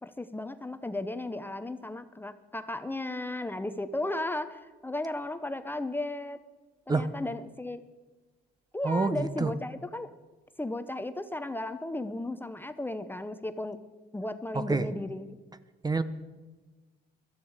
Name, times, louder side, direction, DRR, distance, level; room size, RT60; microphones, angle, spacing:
voice 1, 0.0-6.4 6.9-7.8 8.7-10.1 10.6-13.8 14.1-15.3, left 2 dB, 10° left, 11 dB, 0.7 m, -35 dB
voice 2, 8.8-9.5 14.5-14.9 15.8-16.0, right 3 dB, 20° right, 13 dB, 0.8 m, -27 dB
17.0 x 13.0 x 4.9 m, 1.2 s
cardioid pair, 95°, 18 cm